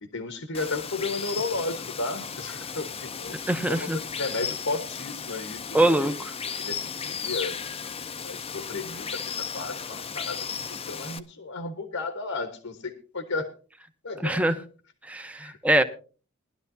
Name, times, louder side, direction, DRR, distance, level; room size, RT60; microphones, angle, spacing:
voice 1, 0.0-6.0 6.6-7.6 8.2-10.6 10.9-13.5 14.0-14.6 15.4-15.6, left 3 dB, 75° left, 1.3 m, -34 dB
Water, 0.5-11.2, left 6 dB, 30° left, 0.6 m, -35 dB
voice 2, 3.3-4.0 5.7-6.3 14.2-14.5 15.1-15.8, right 1 dB, 5° right, 0.8 m, -23 dB
20.0 x 12.0 x 2.7 m
head